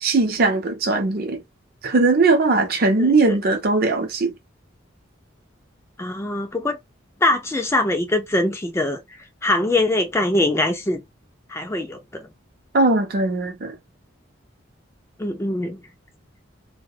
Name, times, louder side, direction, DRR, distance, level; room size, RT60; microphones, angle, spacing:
voice 1, 0.0-1.4 1.8-4.3 12.7-13.7, right 3 dB, 50° right, 0.6 m, -19 dB
voice 2, 6.0-6.8 7.2-9.0 9.4-11.0 11.5-12.3 15.2-15.8, left 2 dB, 15° left, 0.3 m, -22 dB
2.3 x 2.1 x 2.7 m
head